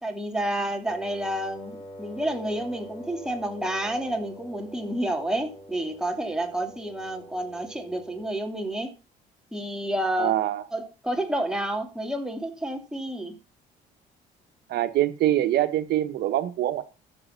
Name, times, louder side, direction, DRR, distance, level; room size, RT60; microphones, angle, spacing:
voice 1, 0.0-8.9 9.5-10.3 10.7-13.3, right 1 dB, 5° right, 2.7 m, -30 dB
Wind instrument woodwind instrument, 0.8-8.4, equal, 30° left, 4.3 m, -45 dB
voice 2, 10.2-10.6 14.7-16.8, right 13 dB, 75° right, 1.4 m, -24 dB
13.5 x 7.4 x 5.8 m
cardioid pair, 110°, 17 cm